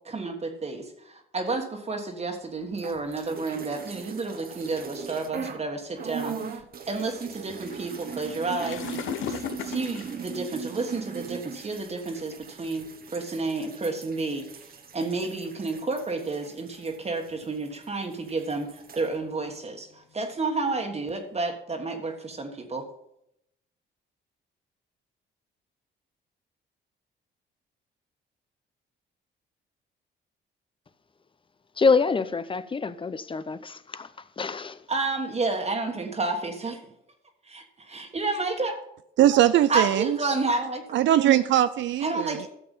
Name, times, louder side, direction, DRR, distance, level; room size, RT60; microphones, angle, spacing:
voice 1, 0.0-6.6 6.9-9.0 9.3-14.5 14.9-22.9 34.9-36.8 37.5-38.8 39.7-40.8 42.0-42.5, right 3 dB, 35° right, 1.5 m, -30 dB
sound 1, 2.7-5.7 6.0-17.9 18.1-19.1, right 7 dB, 50° right, 1.1 m, -40 dB
sound 2, 7.7-11.2 11.9-12.1 12.8-12.9 13.2-13.4 14.0-14.5 15.4-16.5 16.9-17.5 17.9-18.2 18.6-21.3, left 10 dB, 80° left, 0.7 m, -39 dB
voice 2, 31.8-34.1 34.4-34.8, left 4 dB, 25° left, 0.7 m, -25 dB
voice 3, 39.2-40.2 40.9-42.4, right 12 dB, 70° right, 0.4 m, -21 dB
12.5 x 6.8 x 5.4 m
cardioid pair, 90°, 20 cm